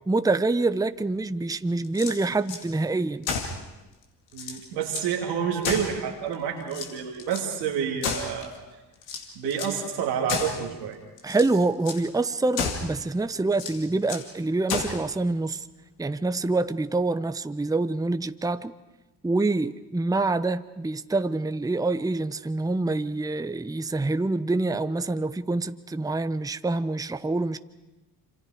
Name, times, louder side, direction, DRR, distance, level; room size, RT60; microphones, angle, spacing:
voice 1, 0.1-3.3 11.2-15.7 16.0-18.7 19.2-27.6, right 2 dB, 5° right, 0.8 m, -26 dB
sound 1, 1.8-2.6 3.2-3.6 4.0-4.1 4.3-5.1 5.6-6.3 6.7-7.5 8.0-8.6 9.0-9.8 10.3-10.7 11.2-11.5 11.8-12.0 12.5-13.0 13.5-14.3 14.7-15.1, left 5 dB, 75° left, 2.4 m, -32 dB
voice 2, 4.3-8.5 9.3-11.0, right 8 dB, 85° right, 2.7 m, -29 dB
27.0 x 26.5 x 5.0 m
hypercardioid pair, 40°, 49 cm